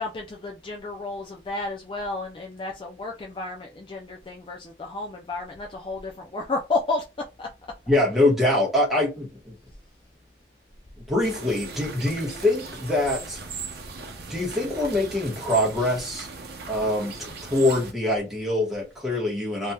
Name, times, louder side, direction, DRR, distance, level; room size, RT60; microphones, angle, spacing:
voice 1, 0.0-7.5, left 3 dB, 30° left, 0.4 m, -32 dB
voice 2, 7.9-9.6 11.1-13.4 14.3-16.3 16.7-19.7, left 1 dB, ahead, 1.3 m, -24 dB
sound 1, 11.2-17.9, right 4 dB, 60° right, 0.8 m, -38 dB
3.3 x 2.8 x 2.2 m
head